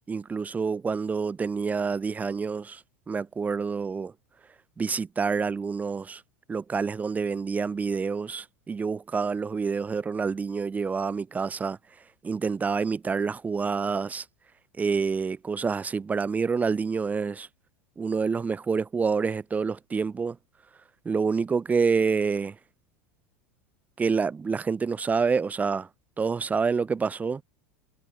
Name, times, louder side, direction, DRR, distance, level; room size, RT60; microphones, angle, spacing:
voice 1, 0.1-2.8 3.1-4.1 4.8-6.2 6.5-11.8 12.2-14.3 14.8-17.5 18.0-20.4 21.1-22.6 24.0-25.9 26.2-27.4, right 5 dB, 20° right, 3.5 m, -27 dB
hypercardioid pair, 85°, 7 cm